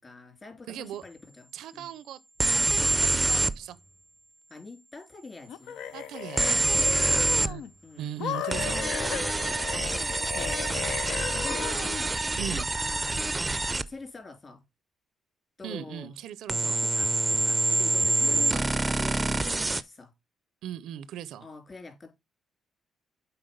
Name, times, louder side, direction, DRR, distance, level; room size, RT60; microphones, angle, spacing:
voice 1, 0.0-1.5 1.7-1.9 4.5-5.8 7.8-8.1 8.5-9.4 9.9-10.7 11.1-11.7 12.5-14.6 15.6-16.1 16.8-20.1 21.4-22.1, left 3 dB, 30° left, 3.2 m, -45 dB
voice 2, 0.7-1.0 1.5-2.2 2.5-3.8 5.9-6.6 6.9-7.6 8.0-8.8 12.4-12.7 15.6-16.8 18.3-18.7 20.6-21.5, right 10 dB, 80° right, 0.5 m, -39 dB
sound 1, 2.4-3.6 6.4-7.5 8.5-13.9 16.5-19.8, right 2 dB, 20° right, 0.4 m, -26 dB
sound 2, 5.5-7.7 8.2-12.1, left 9 dB, 85° left, 0.6 m, -35 dB
7.8 x 4.3 x 5.1 m
cardioid pair, 90°, 0 cm